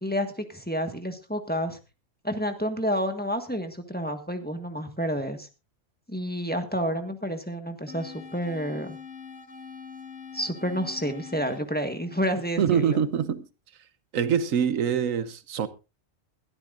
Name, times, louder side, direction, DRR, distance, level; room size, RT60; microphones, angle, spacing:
voice 1, 0.0-1.8 2.2-5.5 6.1-9.0 10.3-13.0, equal, 5° left, 1.5 m, -29 dB
sound 1, 7.9-12.9, left 6 dB, 65° left, 1.6 m, -44 dB
voice 2, 12.6-13.5 14.1-15.7, right 8 dB, 90° right, 1.3 m, -24 dB
21.5 x 12.5 x 2.5 m
omnidirectional pair, 1.3 m